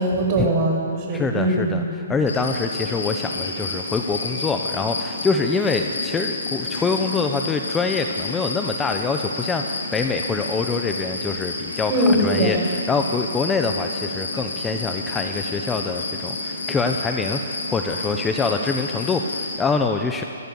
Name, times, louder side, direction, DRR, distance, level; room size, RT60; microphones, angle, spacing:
voice 1, 0.0-1.6 11.9-12.6, right 1 dB, 35° right, 1 dB, 5.4 m, -21 dB
voice 2, 1.1-1.8 2.1-20.2, left 4 dB, 10° left, 5 dB, 0.9 m, -25 dB
sound 1, 2.3-19.6, left 3 dB, 80° left, 4.3 m, -30 dB
26.5 x 14.0 x 7.1 m, 2.6 s
hypercardioid pair, 145°, 0 cm